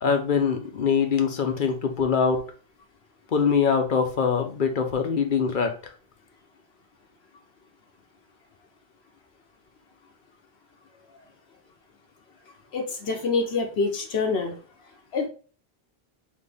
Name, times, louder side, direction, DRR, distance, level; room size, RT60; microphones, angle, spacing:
voice 1, 0.0-2.4 3.3-5.7, left 6 dB, 55° left, 5 dB, 0.8 m, -23 dB
voice 2, 12.7-14.6 15.1-15.3, left 4 dB, 80° left, 2 dB, 1.1 m, -26 dB
4.0 x 3.1 x 3.3 m, 0.40 s
omnidirectional pair, 1.1 m